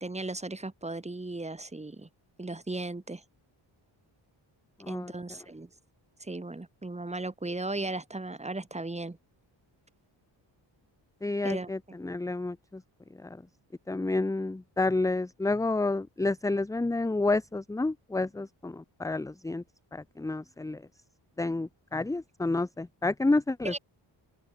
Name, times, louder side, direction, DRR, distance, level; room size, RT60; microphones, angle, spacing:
voice 1, 0.0-2.1 2.4-3.2 4.9-5.7 6.2-9.2 11.4-11.7 23.6-23.8, right 2 dB, 15° right, 2.3 m, -36 dB
voice 2, 4.8-5.4 11.2-12.8 13.2-13.4 13.9-19.6 19.9-20.8 21.4-23.8, left 2 dB, 10° left, 0.5 m, -30 dB
open air
wide cardioid pair, 130°, 46 cm